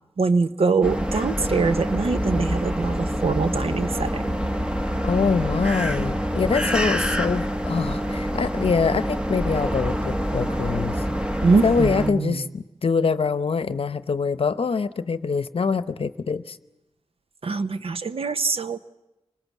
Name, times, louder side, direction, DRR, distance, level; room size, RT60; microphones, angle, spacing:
voice 1, 0.2-4.3 11.4-12.4 17.4-18.8, right 4 dB, 65° right, 10 dB, 0.9 m, -23 dB
sound 1, 0.8-12.1, equal, 10° right, 1.1 m, -26 dB
voice 2, 5.0-11.0 11.6-16.6, left 5 dB, 60° left, 13 dB, 0.8 m, -24 dB
25.0 x 19.5 x 7.2 m, 0.98 s
wide cardioid pair, 70°, 11 cm